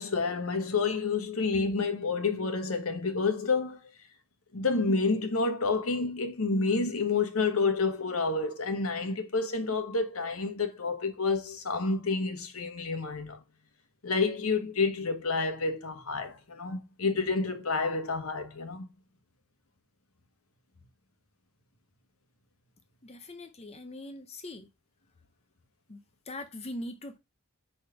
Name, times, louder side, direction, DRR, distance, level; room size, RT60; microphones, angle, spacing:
voice 1, 0.0-3.8 4.5-13.4 14.0-18.8, left 4 dB, 75° left, 1.4 m, -29 dB
voice 2, 23.0-24.7 25.9-26.0 26.3-27.2, left 1 dB, 30° left, 0.6 m, -41 dB
5.0 x 4.3 x 5.7 m
head